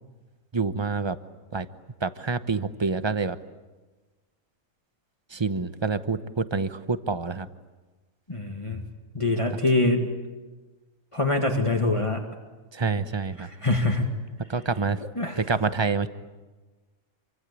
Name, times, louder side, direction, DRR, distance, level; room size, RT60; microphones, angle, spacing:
voice 1, 0.5-1.2 1.5-1.7 2.0-3.4 5.3-7.5 12.7-13.5 14.5-15.0 15.4-16.1, right 4 dB, 25° right, 12 dB, 0.9 m, -27 dB
voice 2, 8.3-8.8 9.1-10.1 11.1-12.2 13.4-14.1 15.2-15.4, left 2 dB, 25° left, 2 dB, 2.1 m, -24 dB
27.5 x 25.0 x 8.4 m, 1.2 s
omnidirectional pair, 1.4 m